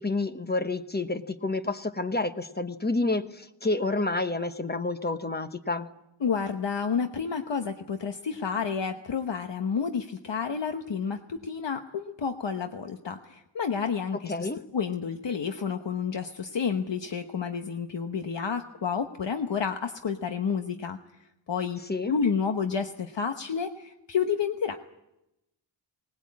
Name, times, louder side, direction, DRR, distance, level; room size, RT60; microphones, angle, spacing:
voice 1, 0.0-5.9 14.3-14.6 21.9-22.1, left 2 dB, 20° left, 9 dB, 1.0 m, -29 dB
voice 2, 6.2-21.0 21.5-21.8 22.1-24.8, left 6 dB, 65° left, 6 dB, 1.1 m, -30 dB
20.0 x 19.5 x 8.6 m, 0.90 s
wide cardioid pair, 105°, 46 cm